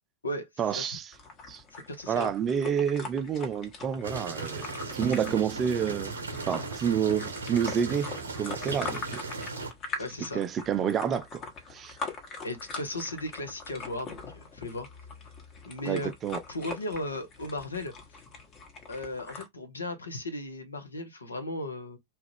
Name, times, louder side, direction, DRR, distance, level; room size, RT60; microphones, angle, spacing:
voice 1, 0.6-1.1 1.5-1.6 2.1-4.7 4.9-6.1 6.5-8.1 8.4-9.2 10.3-11.4 11.7-12.0 15.8-16.4, right 8 dB, 25° right, 0.3 m, -29 dB
sound 1, 1.1-19.5, left 3 dB, 30° left, 1.0 m, -42 dB
voice 2, 1.7-2.3 10.0-10.4 12.4-14.9 15.6-16.1 16.5-17.9 18.9-22.0, left 1 dB, 75° left, 0.7 m, -36 dB
sound 2, 4.0-9.7, right 3 dB, 70° right, 0.7 m, -37 dB
2.8 x 2.3 x 3.2 m
figure-of-eight pair, 90°, 0 cm